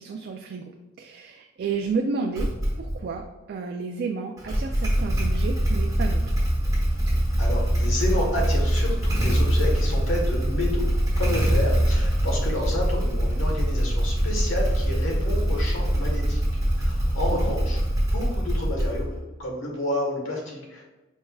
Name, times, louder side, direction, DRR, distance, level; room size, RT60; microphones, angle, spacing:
voice 1, 0.0-2.5 2.8-6.3 17.3-17.4, right 4 dB, 55° right, 1 dB, 0.3 m, -31 dB
Motorcycle / Engine starting, 2.4-3.0 4.4-19.3, equal, 15° right, 0.9 m, -23 dB
voice 2, 7.4-10.8 11.2-16.4 16.8-19.1 19.4-20.9, left 1 dB, 80° left, -1 dB, 1.2 m, -30 dB
5.3 x 3.4 x 2.3 m, 1.1 s
head